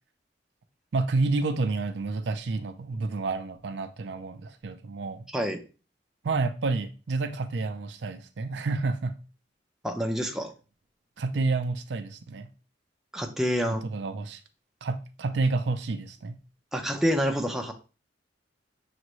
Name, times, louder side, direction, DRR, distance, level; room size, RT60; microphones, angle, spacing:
voice 1, 0.9-5.3 6.2-9.2 11.2-12.5 13.6-14.4 14.8-16.4, right 3 dB, 70° right, 0.5 m, -29 dB
voice 2, 9.8-10.5 13.1-13.8 16.7-17.7, equal, ahead, 0.5 m, -27 dB
6.3 x 2.6 x 3.0 m
head